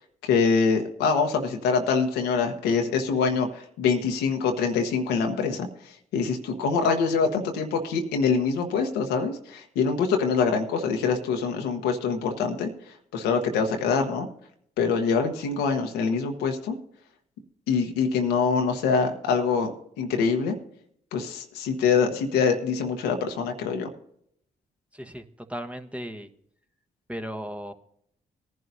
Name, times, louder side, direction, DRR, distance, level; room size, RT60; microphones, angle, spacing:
voice 1, 0.2-5.7 6.1-12.7 13.1-14.3 14.8-16.8 17.7-19.7 20.0-20.6 21.1-23.9, left 5 dB, 85° left, 4 dB, 1.2 m, -24 dB
voice 2, 24.9-26.3 27.1-27.7, equal, 5° right, 7 dB, 1.3 m, -36 dB
19.0 x 11.0 x 2.7 m, 0.69 s
hypercardioid pair, 45°, 17 cm